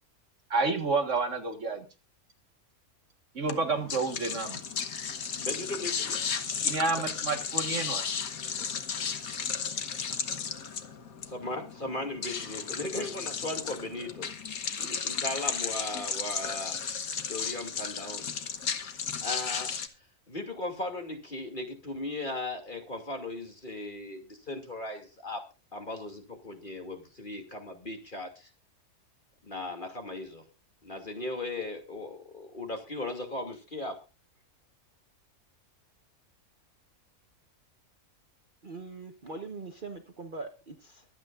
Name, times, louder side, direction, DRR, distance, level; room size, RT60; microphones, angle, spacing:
voice 1, 0.5-1.9 3.4-4.6 6.6-8.0, right 3 dB, 55° right, 5 dB, 1.9 m, -29 dB
sound 1, 3.5-19.9, left 6 dB, 70° left, 1.6 m, -34 dB
voice 2, 5.4-6.2 11.2-14.3 14.8-16.8 17.2-18.4 19.2-19.7 20.3-25.4 25.7-28.5 29.4-30.4 30.8-34.0, left 2 dB, 35° left, 3 dB, 2.7 m, -37 dB
voice 3, 38.6-41.1, right 3 dB, 35° right, 4 dB, 1.2 m, -42 dB
23.5 x 8.9 x 2.5 m, 0.30 s
omnidirectional pair, 1.6 m